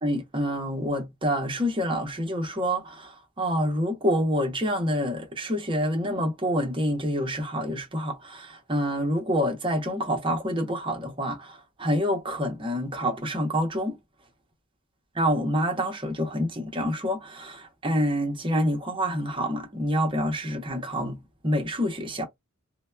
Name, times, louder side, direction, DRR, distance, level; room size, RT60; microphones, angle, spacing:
voice 1, 0.0-14.0 15.2-22.3, equal, 25° right, 0.8 m, -27 dB
2.8 x 2.1 x 2.2 m
head